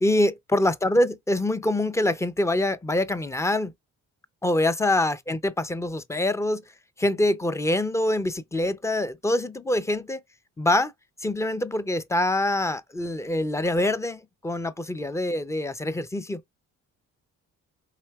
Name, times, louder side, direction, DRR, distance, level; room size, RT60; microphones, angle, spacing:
voice 1, 0.0-3.7 4.4-6.6 7.0-10.2 10.6-10.9 11.2-16.4, left 1 dB, 10° left, 0.4 m, -25 dB
4.3 x 2.8 x 2.3 m
supercardioid pair, 60°, 35 cm